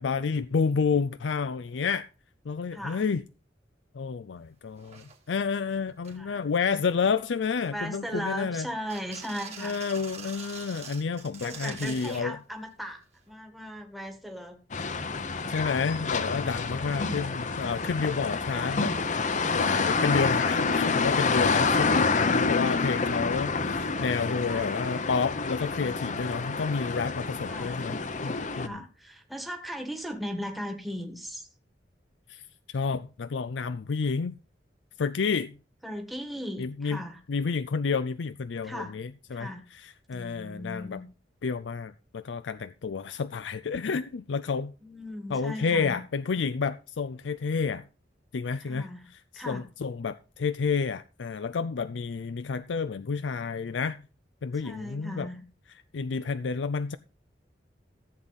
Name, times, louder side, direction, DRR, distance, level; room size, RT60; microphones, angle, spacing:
voice 1, 0.0-2.1 2.5-3.2 3.9-8.7 9.6-12.4 15.5-19.0 19.5-28.8 32.3-32.4 32.7-34.4 35.0-35.6 36.6-41.0 41.4-44.7 45.3-47.8 48.3-54.0 54.4-55.3 55.9-57.0, left 5 dB, 85° left, 0.5 m, -30 dB
voice 2, 2.7-3.0 6.1-6.4 7.7-9.7 11.4-14.6 24.2-24.7 27.5-27.8 28.3-31.5 35.8-37.2 38.6-39.0 39.3-39.7 40.1-41.1 44.8-46.0 48.6-49.1 49.3-49.7 54.6-55.4, equal, ahead, 1.6 m, -38 dB
sound 1, 4.4-4.5 4.8-5.4 5.9-6.2 6.7-7.1 7.6-8.4 8.9-12.3 13.3-13.4, right 6 dB, 35° right, 2.3 m, -44 dB
sound 2, 14.7-28.7, left 4 dB, 45° left, 0.9 m, -28 dB
14.5 x 7.9 x 4.1 m
head